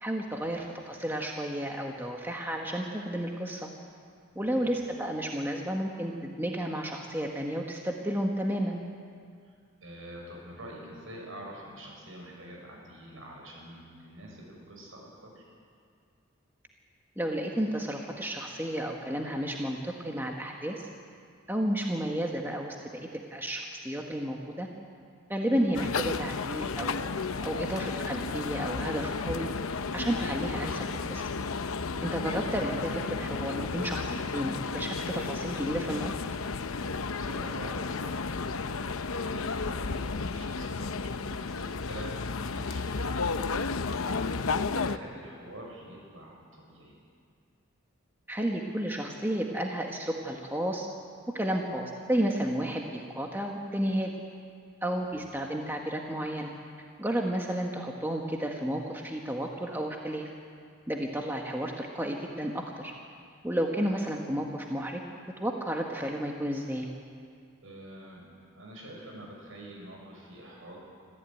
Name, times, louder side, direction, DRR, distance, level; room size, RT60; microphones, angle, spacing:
voice 1, 0.0-3.7 4.3-8.8 17.2-20.9 21.5-24.7 25.3-27.1 27.4-29.5 29.9-31.2 32.0-36.1 48.3-50.9 51.3-54.1 54.8-56.5 57.0-60.3 60.9-62.9 63.4-65.0 65.4-66.9, right 1 dB, 10° right, 1 dB, 1.3 m, -32 dB
voice 2, 4.4-4.7 9.4-15.4 25.4-25.6 37.0-38.6 39.1-47.0 55.1-55.2 67.6-70.8, right 1 dB, 70° right, -1 dB, 7.1 m, -46 dB
sound 1, 25.7-45.0, left 4 dB, 80° left, 0.8 m, -33 dB
25.5 x 14.5 x 9.2 m, 2.2 s
head